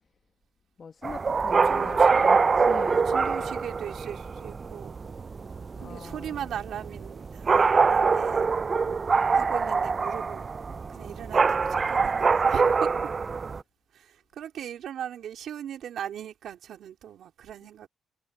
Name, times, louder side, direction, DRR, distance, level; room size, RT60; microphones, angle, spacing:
voice 1, 0.8-3.6 5.8-6.6, left 5 dB, 40° left, 1.2 m, -41 dB
sound 1, 1.0-13.6, right 5 dB, 35° right, 0.3 m, -24 dB
voice 2, 1.7-2.2 2.8-5.0 5.8-8.5 9.3-10.5 10.9-13.1 13.9-17.9, right 10 dB, 70° right, 3.5 m, -39 dB
cardioid pair, 90°, 0 cm